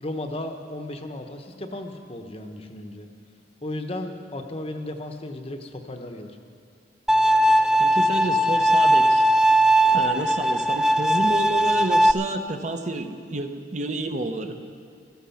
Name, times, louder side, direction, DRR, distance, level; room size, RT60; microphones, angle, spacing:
voice 1, 0.0-3.1 3.6-6.3, left 1 dB, 30° left, 5 dB, 0.9 m, -35 dB
Bowed string instrument, 7.1-12.1, right 1 dB, 5° right, 0.4 m, -19 dB
voice 2, 7.8-9.3 9.9-14.6, right 2 dB, 40° right, 6 dB, 0.8 m, -30 dB
15.0 x 13.5 x 5.8 m, 2.3 s
head